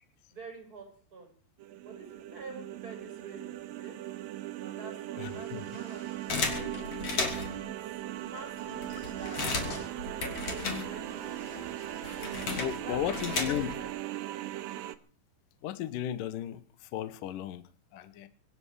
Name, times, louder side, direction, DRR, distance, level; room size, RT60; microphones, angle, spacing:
voice 1, 0.3-1.3 1.8-4.0 4.6-6.3 7.1-7.8 8.2-9.6 10.1-12.0 12.8-13.4 13.6-13.9, right 3 dB, 20° right, 6.4 m, -48 dB
sound 1, 1.6-15.0, right 14 dB, 80° right, 2.1 m, -39 dB
sound 2, 5.2-13.1, left 3 dB, 90° left, 7.7 m, -54 dB
voice 2, 5.2-5.7 12.5-13.7 15.6-18.3, left 10 dB, 70° left, 2.1 m, -35 dB
sound 3, 6.3-7.7 8.3-8.4 8.6-11.3 11.5-13.9, left 4 dB, 35° left, 3.5 m, -34 dB
24.5 x 11.5 x 4.9 m
omnidirectional pair, 5.2 m